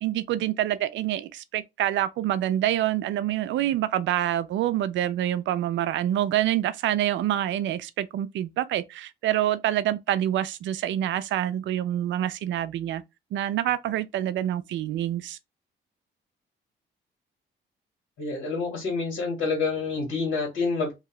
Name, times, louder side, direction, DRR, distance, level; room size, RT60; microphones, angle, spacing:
voice 1, 0.0-13.0 13.3-15.4, right 12 dB, 70° right, 0.4 m, -26 dB
voice 2, 18.2-20.9, left 4 dB, 75° left, 1.7 m, -28 dB
2.7 x 2.3 x 3.0 m
cardioid pair, 90°, 20 cm